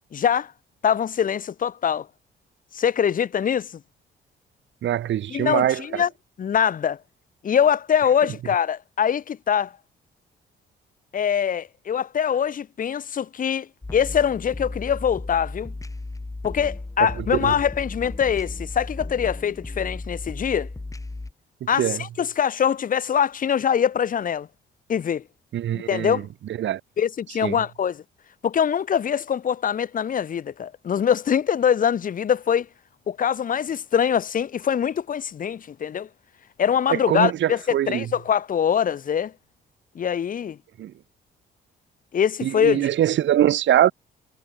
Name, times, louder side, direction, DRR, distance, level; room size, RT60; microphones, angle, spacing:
voice 1, 0.1-0.5 0.8-2.1 2.7-3.7 5.3-6.1 6.4-7.0 7.4-9.7 11.1-15.7 16.4-20.7 21.7-24.5 24.9-25.2 25.7-26.3 27.0-28.0 28.4-32.7 33.1-36.1 36.6-39.3 39.9-40.6 42.1-42.9, left 8 dB, 45° left, 0.8 m, -23 dB
voice 2, 4.8-6.0 17.4-17.5 21.6-22.0 25.5-26.2 26.6-26.8 27.4-27.6 36.9-38.1 40.8-40.9 42.4-43.9, right 11 dB, 70° right, 1.6 m, -23 dB
sound 1, 13.8-21.3, left 2 dB, 15° left, 2.9 m, -35 dB
cardioid pair, 90°, 20 cm